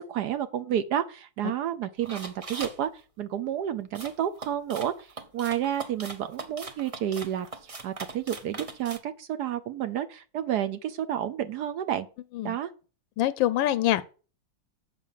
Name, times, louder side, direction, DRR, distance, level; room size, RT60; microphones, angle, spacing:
voice 1, 0.0-2.9 3.2-12.1 12.4-12.7, right 10 dB, 70° right, 1.1 m, -30 dB
sound 1, 2.0-2.8 3.9-9.0, right 3 dB, 45° right, 0.4 m, -40 dB
voice 2, 13.2-14.0, left 13 dB, 85° left, 1.3 m, -24 dB
7.3 x 5.2 x 7.4 m
omnidirectional pair, 2.0 m